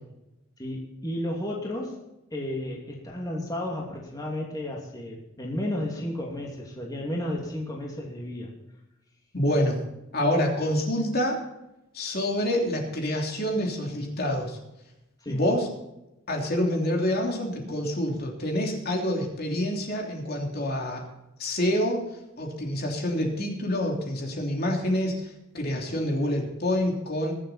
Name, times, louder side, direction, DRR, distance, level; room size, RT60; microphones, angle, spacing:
voice 1, 0.6-2.0 2.3-8.5 15.2-15.4, left 1 dB, 20° left, -2 dB, 2.7 m, -33 dB
voice 2, 9.3-9.8 10.1-11.4 11.9-14.6 15.3-15.7 16.3-21.0 21.4-27.3, left 1 dB, 50° left, 0 dB, 3.1 m, -27 dB
22.5 x 7.8 x 4.3 m, 0.91 s
head